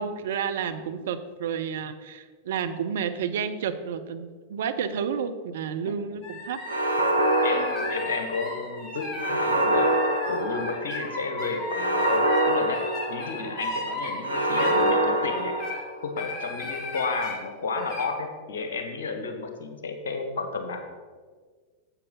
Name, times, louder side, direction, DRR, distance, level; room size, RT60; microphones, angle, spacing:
voice 1, 0.0-6.6, right 7 dB, 60° right, 9 dB, 0.6 m, -30 dB
sound 1, 6.2-15.8 16.2-17.4 17.8-18.1, left 1 dB, 30° left, 2.0 m, -35 dB
sound 2, 6.7-8.5 9.2-11.0 11.7-13.6 14.2-16.1, right 1 dB, 80° right, 1.0 m, -25 dB
voice 2, 7.4-10.0 10.3-15.6 16.0-20.8, left 4 dB, 65° left, 6 dB, 1.2 m, -32 dB
9.0 x 7.8 x 3.9 m, 1.5 s
figure-of-eight pair, 90°, 0 cm